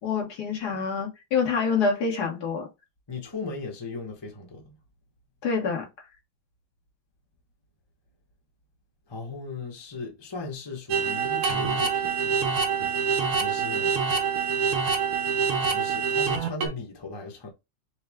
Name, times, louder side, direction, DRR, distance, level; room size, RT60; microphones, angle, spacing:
voice 1, 0.0-2.7 5.4-5.9, left 5 dB, 55° left, 1.5 m, -26 dB
voice 2, 3.1-4.7 9.1-12.4 13.4-13.9 15.7-17.5, left 3 dB, 35° left, 0.4 m, -37 dB
sound 1, 10.9-16.7, right 6 dB, 90° right, 1.7 m, -25 dB
5.6 x 2.1 x 3.4 m
omnidirectional pair, 2.3 m